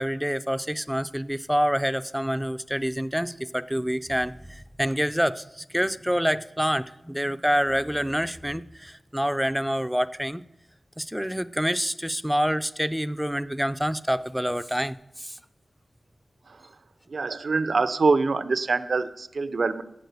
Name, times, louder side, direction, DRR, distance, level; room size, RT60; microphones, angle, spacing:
voice 1, 0.0-10.4 11.0-15.4, equal, 5° right, 14 dB, 0.4 m, -27 dB
voice 2, 17.1-19.8, right 4 dB, 65° right, 13 dB, 0.5 m, -25 dB
7.3 x 6.7 x 7.8 m, 0.89 s
wide cardioid pair, 80°, 0 cm